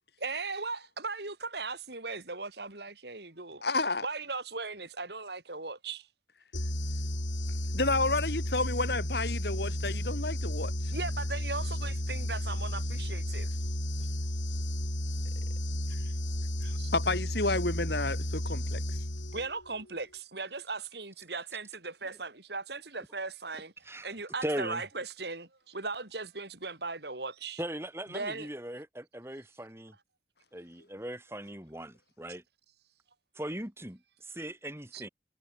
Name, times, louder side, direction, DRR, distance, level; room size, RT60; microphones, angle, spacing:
voice 1, 0.2-3.6 4.0-6.1 10.9-13.6 15.9-16.1 16.6-16.9 19.3-23.7 24.0-27.6 28.1-28.5 34.9-35.0, right 3 dB, 60° right, 3.5 m, -38 dB
voice 2, 3.6-4.1 7.7-10.7 16.9-18.8, left 2 dB, 60° left, 4.2 m, -30 dB
sound 1, 6.5-19.7, left 1 dB, 85° left, 6.8 m, -33 dB
voice 3, 24.4-24.8 27.6-29.9 30.5-32.4 33.4-35.1, right 1 dB, 15° right, 3.8 m, -39 dB
head